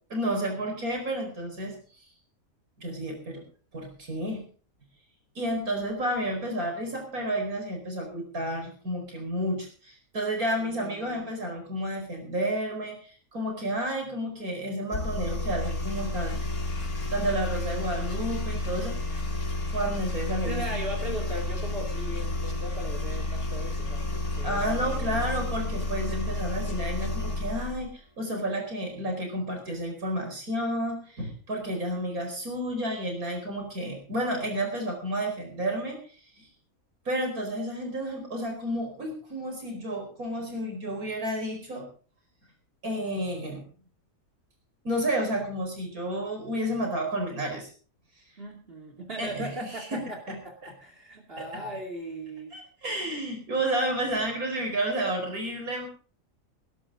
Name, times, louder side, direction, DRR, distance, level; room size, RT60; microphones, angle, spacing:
voice 1, 0.1-1.8 2.8-3.4 3.7-4.4 5.4-16.5 17.1-19.0 19.7-20.8 24.4-27.9 28.2-36.0 36.4-36.5 37.1-41.9 42.8-43.6 44.8-47.7 49.2-50.0 50.3-50.4 51.4-51.6 52.5-55.9, right 1 dB, 85° right, 3 dB, 5.2 m, -31 dB
voice 2, 10.5-11.2 20.4-25.3 48.4-52.5, right 1 dB, 40° right, 2 dB, 2.8 m, -38 dB
sound 1, 14.9-27.9, left 2 dB, 85° left, 2.9 m, -31 dB
20.0 x 12.5 x 3.8 m, 0.40 s
omnidirectional pair, 1.5 m